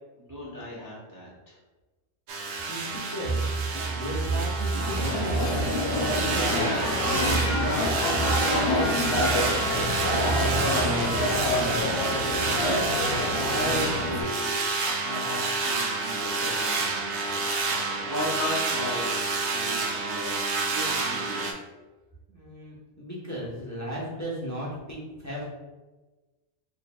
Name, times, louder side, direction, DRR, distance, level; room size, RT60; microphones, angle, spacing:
voice 1, 0.2-1.6 12.5-12.8 13.2-14.5 15.0-17.1 17.7-20.3 20.7-21.5, left 1 dB, 20° right, -6 dB, 0.7 m, -36 dB
sound 1, 2.3-21.5, right 3 dB, 80° right, 0.9 m, -29 dB
voice 2, 2.7-3.6 3.8-9.6 22.3-25.5, equal, 15° left, -7 dB, 0.8 m, -36 dB
sound 2, 3.2-11.7, right 4 dB, 55° right, 1.0 m, -32 dB
sound 3, 4.8-14.2, left 2 dB, 60° left, 0.9 m, -27 dB
4.5 x 3.3 x 2.2 m, 1.2 s
omnidirectional pair, 1.1 m